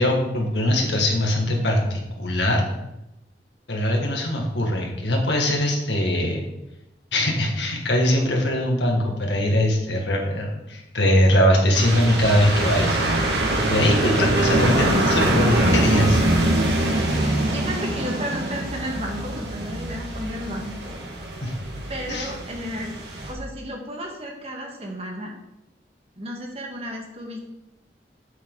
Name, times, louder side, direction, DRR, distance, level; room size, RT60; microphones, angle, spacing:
voice 1, 0.0-2.6 3.7-6.4 7.1-13.2 13.7-16.2 21.4-21.5 22.1-22.3, left 1 dB, 90° left, 1 dB, 2.1 m, -21 dB
sound 1, 11.7-23.3, right 1 dB, 80° right, 2.2 m, -23 dB
voice 2, 17.5-20.9 21.9-25.3 26.2-27.4, equal, 35° right, 0 dB, 1.9 m, -33 dB
8.7 x 8.3 x 4.1 m, 0.91 s
head